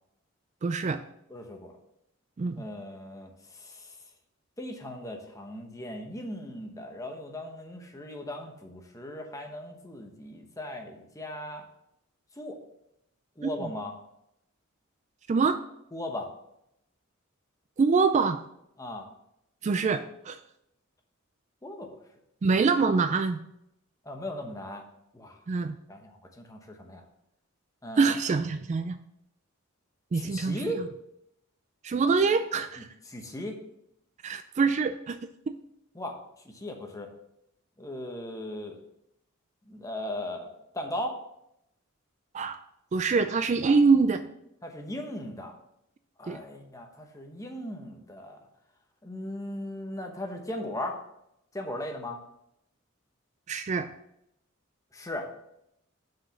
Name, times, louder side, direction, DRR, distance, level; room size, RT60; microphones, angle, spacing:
voice 1, 0.6-1.0 2.4-2.6 13.4-13.7 15.3-15.6 17.8-18.4 19.6-20.4 22.4-23.4 25.5-25.8 28.0-29.0 30.1-30.7 31.8-32.9 34.2-35.2 35.5-35.6 42.3-42.6 42.9-44.2 46.3-46.4 53.5-53.9, right 4 dB, 35° right, 10 dB, 0.3 m, -25 dB
voice 2, 1.3-1.7 2.6-3.9 4.6-11.6 12.4-12.6 13.4-13.9 15.9-16.3 18.8-19.1 21.6-21.9 24.0-24.8 25.1-25.4 25.9-27.0 27.8-28.2 30.1-30.8 33.1-33.5 35.9-36.2 36.4-37.1 37.8-38.8 39.7-41.2 44.6-45.5 46.2-48.4 49.0-51.0 51.5-52.2 54.9-55.3, left 1 dB, 15° left, 3 dB, 1.0 m, -38 dB
6.3 x 5.0 x 5.7 m, 0.80 s
head